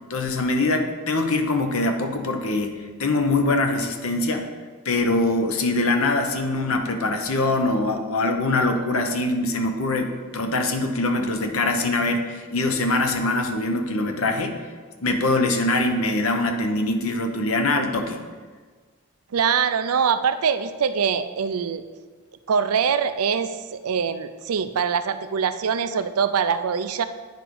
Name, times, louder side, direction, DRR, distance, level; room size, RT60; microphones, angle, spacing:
voice 1, 0.1-4.5 4.8-14.6 15.0-18.2, left 2 dB, 75° left, 5 dB, 0.9 m, -23 dB
voice 2, 19.3-21.8 22.5-27.0, right 6 dB, 90° right, 11 dB, 0.5 m, -23 dB
9.3 x 5.2 x 4.7 m, 1.5 s
head